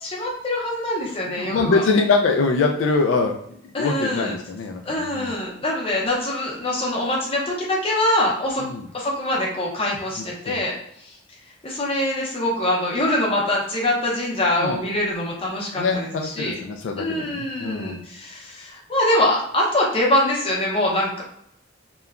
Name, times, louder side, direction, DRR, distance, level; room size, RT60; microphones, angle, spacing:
voice 1, 0.0-1.8 3.7-4.3 4.9-8.6 8.9-11.2 11.6-16.6 17.0-21.2, left 1 dB, 30° left, -3 dB, 0.7 m, -24 dB
voice 2, 1.3-3.4 3.8-5.3 8.6-8.9 10.4-10.6 14.6-14.8 15.8-18.0, left 4 dB, 75° left, 3 dB, 0.3 m, -23 dB
2.9 x 2.1 x 2.4 m, 0.72 s
head